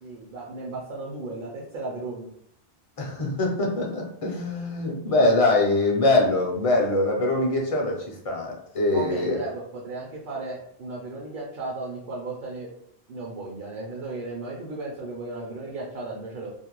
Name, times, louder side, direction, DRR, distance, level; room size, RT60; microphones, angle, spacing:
voice 1, 0.0-2.3 8.9-12.7 13.1-16.5, right 2 dB, 60° right, -3 dB, 0.7 m, -35 dB
voice 2, 3.0-9.4, left 2 dB, 45° left, 0 dB, 0.5 m, -23 dB
2.5 x 2.1 x 2.9 m, 0.70 s
omnidirectional pair, 1.0 m